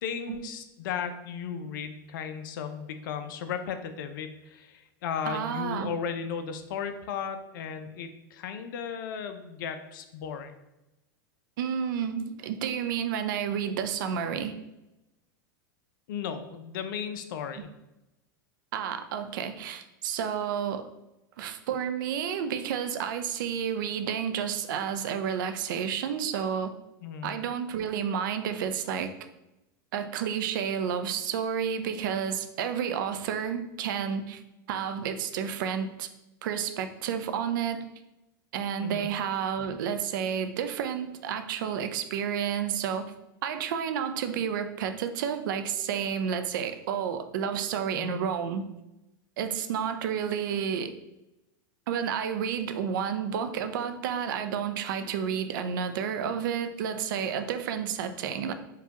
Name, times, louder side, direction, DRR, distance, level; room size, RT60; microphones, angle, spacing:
voice 1, 0.0-10.5 16.1-17.7 27.0-27.3 38.8-39.1 47.9-48.2, left 7 dB, 70° left, 9 dB, 0.5 m, -35 dB
voice 2, 5.2-5.9 11.6-14.5 18.7-20.9 21.4-26.7 27.2-29.1 29.9-34.4 34.7-36.1 36.4-37.8 38.5-43.1 43.4-48.7 49.4-50.9 51.9-58.5, right 8 dB, 70° right, 9 dB, 0.4 m, -30 dB
4.7 x 2.3 x 2.9 m, 0.94 s
hypercardioid pair, 105°, 11 cm